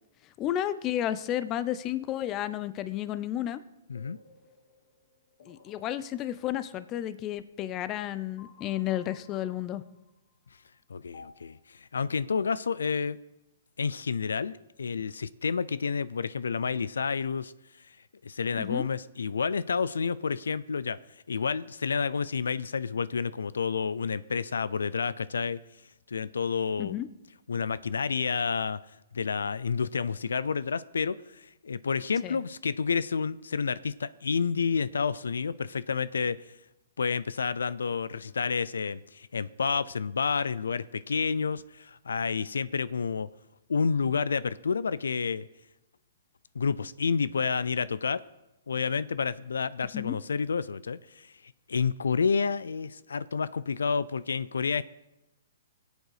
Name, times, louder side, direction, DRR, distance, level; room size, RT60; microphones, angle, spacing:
voice 1, 0.4-3.6 5.5-9.8 18.6-18.9 26.8-27.1 32.2-32.4 49.9-50.2, left 12 dB, 25° left, 14 dB, 0.7 m, -32 dB
sound 1, 3.9-7.0 8.4-10.3 11.1-11.3, left 4 dB, 60° left, 2.2 m, -56 dB
voice 2, 10.9-13.2 13.8-17.5 17.9-18.0 18.2-21.0 21.3-25.6 26.1-27.0 27.5-28.8 29.1-36.5 37.0-43.3 43.7-45.5 46.5-48.2 48.7-54.8, left 5 dB, 90° left, 18 dB, 0.4 m, -30 dB
20.5 x 8.3 x 4.9 m, 0.98 s
hypercardioid pair, 140°, 0 cm